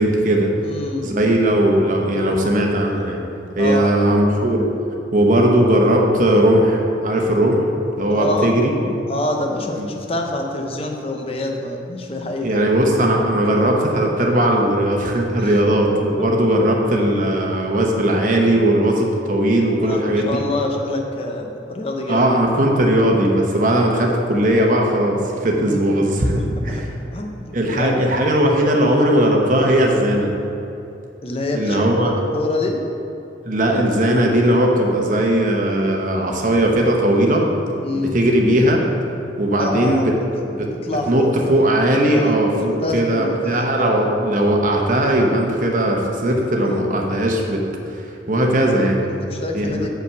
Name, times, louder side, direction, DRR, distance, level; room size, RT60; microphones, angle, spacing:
voice 1, 0.0-0.5 1.0-3.2 3.6-4.7 5.1-7.7 8.0-8.7 9.8-9.9 12.4-20.4 22.1-26.9 27.5-30.3 31.5-32.1 33.4-37.5 37.9-38.8 39.4-40.1 40.4-40.5 41.1-47.6 47.9-48.0 48.3-49.0 49.5-49.9, right 1 dB, 45° right, 0 dB, 1.0 m, -18 dB
voice 2, 0.6-1.1 3.6-3.9 8.1-12.6 15.4-15.6 19.8-22.3 25.5-26.0 26.3-27.9 31.2-32.0 32.3-32.8 37.8-38.1 39.6-40.0 40.3-40.4 40.7-41.7 42.1-42.3 42.8-43.9 46.3-46.8 49.2-49.9, left 2 dB, 30° left, 2 dB, 0.7 m, -27 dB
6.0 x 5.7 x 6.9 m, 2.7 s
head